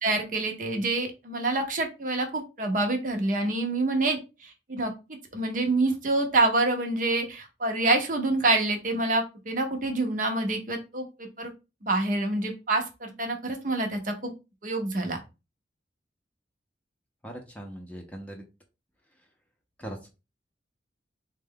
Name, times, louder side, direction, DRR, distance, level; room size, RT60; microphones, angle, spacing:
voice 1, 0.0-4.9 5.3-11.5 11.8-14.3 14.6-15.2, right 2 dB, 45° right, 4 dB, 0.7 m, -27 dB
voice 2, 17.2-18.4 19.8-20.0, right 1 dB, 10° left, 2 dB, 0.6 m, -40 dB
3.8 x 2.1 x 3.6 m, 0.28 s
head